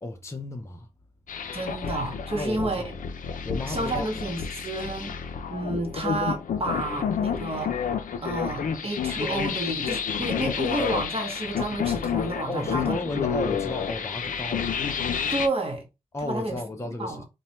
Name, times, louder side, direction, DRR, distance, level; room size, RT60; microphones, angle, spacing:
voice 1, 0.0-0.9 2.3-3.0 3.4-4.1 12.5-14.7 16.1-17.2, left 2 dB, 20° left, 0.6 m, -33 dB
sound 1, 1.3-15.5, left 7 dB, 65° left, 0.5 m, -30 dB
voice 2, 1.5-2.8 3.7-5.1 5.5-7.8 8.2-13.0 15.3-15.9 16.2-16.5 17.0-17.2, right 2 dB, 40° right, 1.1 m, -30 dB
3.0 x 2.2 x 2.9 m
supercardioid pair, 40°, 15 cm